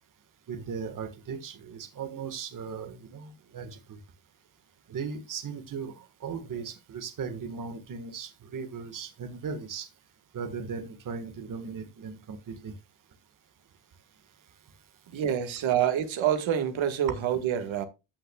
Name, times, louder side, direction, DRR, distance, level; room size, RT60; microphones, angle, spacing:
voice 1, 0.5-4.0 4.9-5.9 6.2-9.9 10.3-12.7, right 5 dB, 45° right, 1.5 m, -37 dB
voice 2, 15.1-17.8, right 9 dB, 80° right, 1.7 m, -27 dB
14.5 x 5.8 x 2.3 m
cardioid pair, 160°, 46 cm